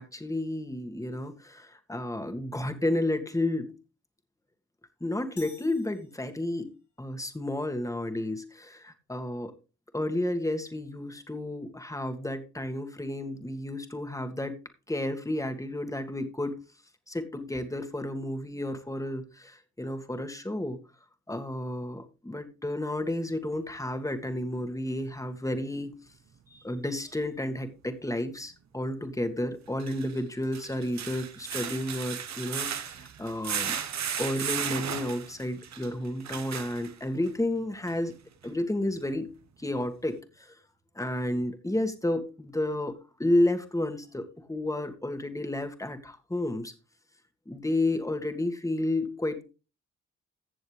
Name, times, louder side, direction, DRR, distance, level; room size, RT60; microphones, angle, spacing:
voice 1, 0.0-3.8 5.0-6.7 7.0-9.5 9.9-14.6 14.9-16.6 17.1-20.8 21.3-25.9 26.5-33.8 34.2-38.2 38.4-40.5 41.0-46.7 47.5-49.4, left 1 dB, 10° left, 7 dB, 2.0 m, -31 dB
sound 1, 5.4-6.8, left 3 dB, 70° left, 5.7 m, -52 dB
sound 2, 27.1-27.2 29.7-37.3 37.9-38.0 38.4-38.5, right 8 dB, 60° right, 1.1 m, -35 dB
15.5 x 7.0 x 3.4 m, 0.32 s
supercardioid pair, 50°, 31 cm